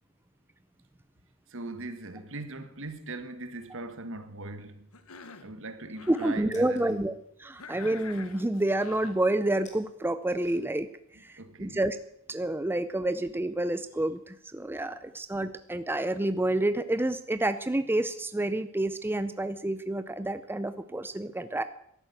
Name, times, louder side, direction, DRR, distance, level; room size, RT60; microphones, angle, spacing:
voice 1, 1.5-4.9 5.4-7.0 11.1-11.8, right 2 dB, 65° right, 1.6 m, -40 dB
Cough, 4.9-5.5 5.9-6.5 7.6-9.2, left 4 dB, 90° left, 1.4 m, -46 dB
sound 1, 6.0-11.0, left 3 dB, 35° left, 3.0 m, -57 dB
voice 2, 6.1-7.1 7.4-10.9 11.2-12.0 12.3-21.6, right 1 dB, 10° right, 0.5 m, -29 dB
13.5 x 11.0 x 8.2 m
head